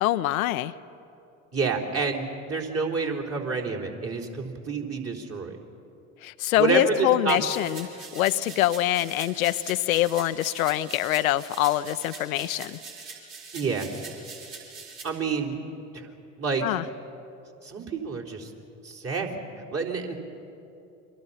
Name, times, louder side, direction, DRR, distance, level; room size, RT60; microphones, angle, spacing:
voice 1, 0.0-0.7 6.2-12.8 16.6-16.8, left 14 dB, 80° left, 12 dB, 0.7 m, -25 dB
voice 2, 1.5-5.6 6.6-7.4 13.5-13.9 15.0-15.6 15.9-16.1 16.4-16.6 17.6-18.5 18.8-19.4 19.7-20.1, right 4 dB, 35° right, 1 dB, 4.1 m, -28 dB
sound 1, 7.3-15.0, right 5 dB, 60° right, 6.2 m, -43 dB
29.0 x 24.0 x 5.8 m, 2.8 s
hypercardioid pair, 70°, 42 cm